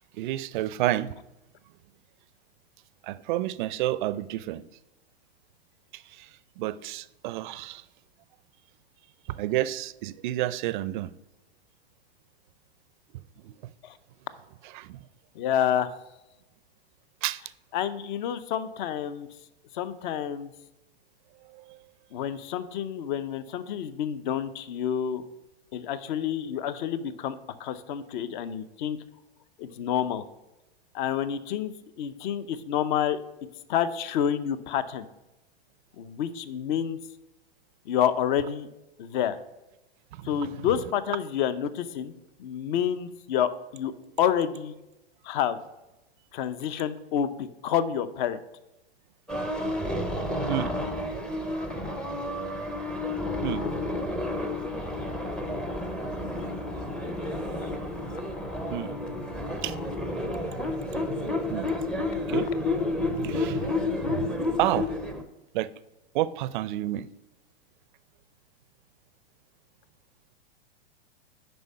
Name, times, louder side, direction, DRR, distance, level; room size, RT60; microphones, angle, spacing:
voice 1, 0.1-1.2 3.0-4.6 5.9-6.3 6.6-7.8 9.3-11.1 13.1-13.7 14.6-15.1 17.2-17.4 21.5-21.8 40.1-40.7 50.5-50.8 53.4-53.7 58.7-59.0 59.6-59.8 61.5-61.7 62.3-62.5 63.0-64.9 65.5-65.7 66.1-67.1, right 14 dB, 50° right, 0.5 m, -30 dB
voice 2, 15.3-15.9 17.7-19.3 19.7-20.5 22.1-25.2 25.7-29.0 29.6-30.2 30.9-33.2 33.7-35.1 36.0-37.0 37.9-38.7 39.0-39.4 40.2-42.1 42.4-44.7 45.2-45.6 46.3-48.4, left 9 dB, 50° left, 0.7 m, -28 dB
sound 1, 49.3-65.2, left 2 dB, 5° left, 0.5 m, -30 dB
7.9 x 5.3 x 5.5 m
hypercardioid pair, 130°, 31 cm